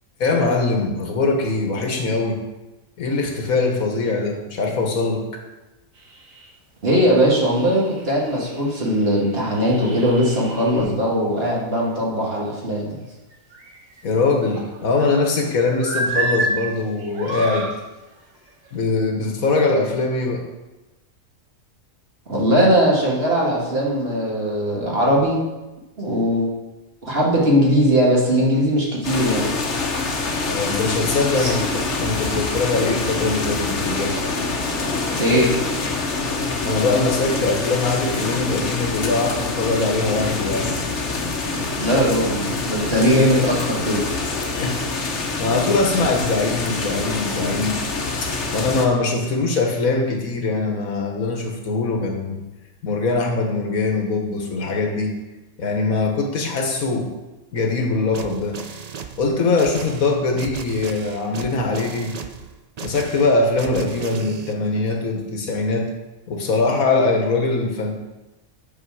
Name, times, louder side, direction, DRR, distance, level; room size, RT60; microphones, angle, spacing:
voice 1, 0.2-2.4 3.0-5.4 14.0-17.7 18.7-20.4 30.4-34.2 36.6-40.8 44.6-47.8 48.2-52.4 52.8-55.1 55.6-57.1 57.5-58.6 59.2-62.2 62.8-65.9 66.3-67.9, left 3 dB, 85° left, 2 dB, 1.7 m, -22 dB
sound 1, 6.0-6.5 7.0-7.1 7.4-10.9 13.3-14.0 14.5-15.4 15.8-16.5 17.0-17.7 18.5-18.7, right 2 dB, 70° right, 1.7 m, -30 dB
voice 2, 6.8-13.0 22.3-25.4 26.0-26.5 27.0-29.5 31.4-31.5 35.2-35.5 41.8-44.0, equal, 45° right, -4 dB, 2.2 m, -19 dB
sound 2, 29.0-48.9, left 3 dB, 55° left, 1.3 m, -25 dB
sound 3, 58.1-64.5, right 6 dB, 90° right, 0.3 m, -36 dB
8.7 x 6.2 x 4.8 m, 1.1 s
omnidirectional pair, 1.5 m